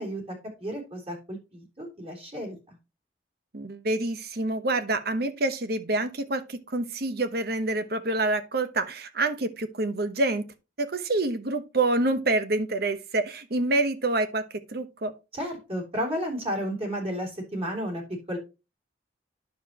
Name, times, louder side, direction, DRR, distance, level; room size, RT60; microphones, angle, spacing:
voice 1, 0.0-2.8 15.3-18.4, equal, 35° right, 3.7 m, -33 dB
voice 2, 3.5-10.5 10.8-15.1, right 2 dB, 60° right, 1.1 m, -27 dB
9.9 x 6.7 x 3.0 m
head